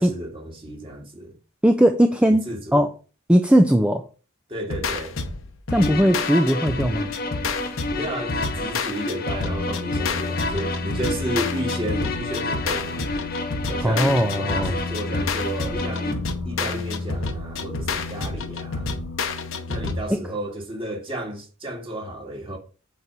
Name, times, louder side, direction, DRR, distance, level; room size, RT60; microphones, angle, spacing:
voice 1, 0.0-1.3 2.5-2.9 4.5-5.2 7.9-13.1 13.7-16.2 16.4-18.9 19.7-22.6, right 1 dB, 25° right, 2.2 m, -32 dB
voice 2, 1.6-2.9 3.3-4.0 5.7-7.1 13.8-14.7 20.1-20.2, equal, 5° right, 0.5 m, -19 dB
sound 1, 4.7-20.0, left 3 dB, 65° left, 1.0 m, -29 dB
sound 2, 5.7-16.1, left 3 dB, 45° left, 1.3 m, -30 dB
8.4 x 4.6 x 5.4 m
head